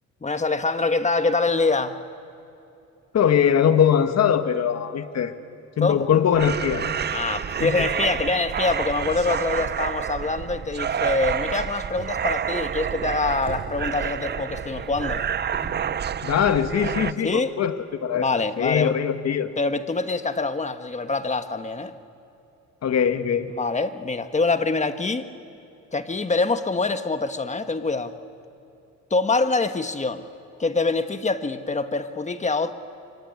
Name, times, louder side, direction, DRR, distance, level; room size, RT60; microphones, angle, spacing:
voice 1, 0.2-2.0 5.8-6.1 7.1-15.2 17.2-17.5 18.1-18.9 19.6-21.9 23.5-25.3 25.9-28.1 29.1-30.3 30.6-32.7, left 3 dB, 25° left, 9 dB, 1.4 m, -25 dB
voice 2, 3.1-5.3 5.8-6.9 7.6-7.9 16.2-17.8 18.0-18.3 18.6-19.5 22.8-23.5, left 8 dB, 60° left, 9 dB, 1.7 m, -21 dB
sound 1, 6.3-17.1, right 8 dB, 35° right, 0.6 m, -28 dB
Drawer open or close, 12.0-13.0 13.3-15.9 16.8-16.9 17.3-17.4, right 1 dB, 20° right, 5.6 m, -46 dB
25.5 x 24.0 x 9.6 m, 2.8 s
cardioid pair, 90°, 30 cm